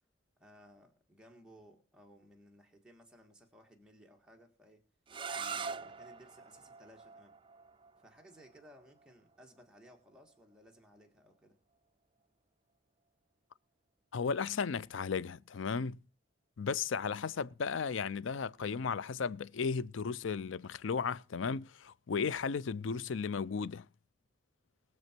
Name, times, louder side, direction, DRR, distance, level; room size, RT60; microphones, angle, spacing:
voice 1, 0.4-4.8 5.3-7.4 8.0-11.6 22.1-22.3, equal, 5° right, 1.7 m, -59 dB
sound 1, 5.1-10.8, right 5 dB, 25° right, 0.6 m, -45 dB
voice 2, 14.1-16.0 16.6-23.9, left 5 dB, 85° left, 0.5 m, -35 dB
20.5 x 7.0 x 4.4 m
head